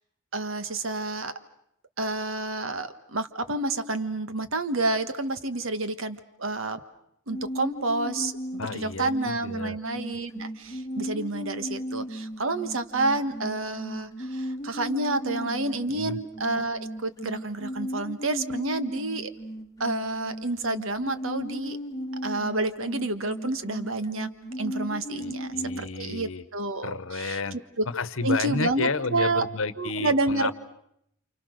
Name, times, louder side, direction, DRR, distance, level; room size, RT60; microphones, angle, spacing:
voice 1, 0.3-1.3 2.0-6.8 7.3-19.3 19.8-21.8 22.2-24.3 24.6-27.8 28.2-29.4 29.8-30.5, right 2 dB, 75° right, 10 dB, 1.5 m, -29 dB
sound 1, 7.3-25.8, equal, 15° left, 1.3 m, -36 dB
voice 2, 8.6-9.8 15.9-16.2 25.1-26.4 26.8-27.6 27.9-30.5, left 4 dB, 75° left, 15 dB, 1.1 m, -31 dB
29.5 x 28.0 x 6.5 m, 0.74 s
head